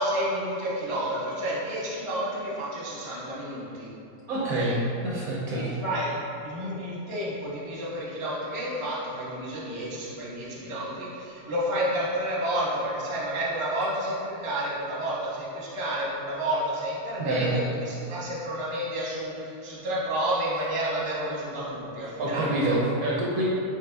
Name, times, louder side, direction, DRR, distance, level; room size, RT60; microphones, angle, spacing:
voice 1, 0.0-3.9 4.5-4.8 5.5-6.1 6.4-22.7, right 1 dB, 30° right, -7 dB, 0.6 m, -30 dB
voice 2, 4.3-4.8 5.0-5.7 17.2-17.6 22.2-23.5, right 1 dB, 70° right, -5 dB, 0.9 m, -26 dB
4.9 x 4.0 x 2.2 m, 2.6 s
omnidirectional pair, 1.8 m